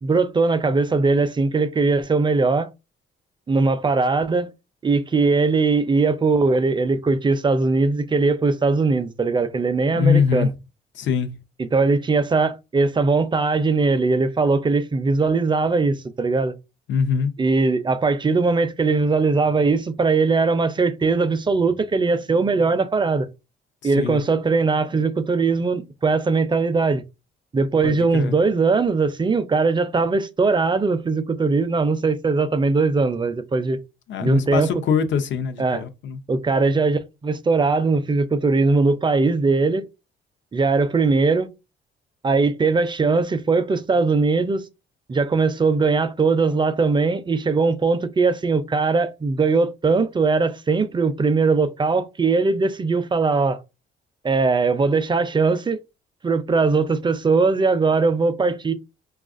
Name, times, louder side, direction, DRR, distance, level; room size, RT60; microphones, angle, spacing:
voice 1, 0.0-2.7 3.5-4.5 4.8-10.5 11.7-16.5 17.4-23.3 23.8-27.0 27.5-33.8 34.2-34.7 35.6-35.8 36.3-39.9 40.5-41.5 42.2-44.6 45.1-53.6 54.2-55.8 56.2-58.7, right 4 dB, 25° right, 0.4 m, -20 dB
voice 2, 9.9-10.5 10.9-11.3 16.9-17.3 23.8-24.2 27.8-28.4 34.1-36.2, left 6 dB, 70° left, 0.7 m, -22 dB
4.7 x 2.4 x 2.5 m
cardioid pair, 90°, 20 cm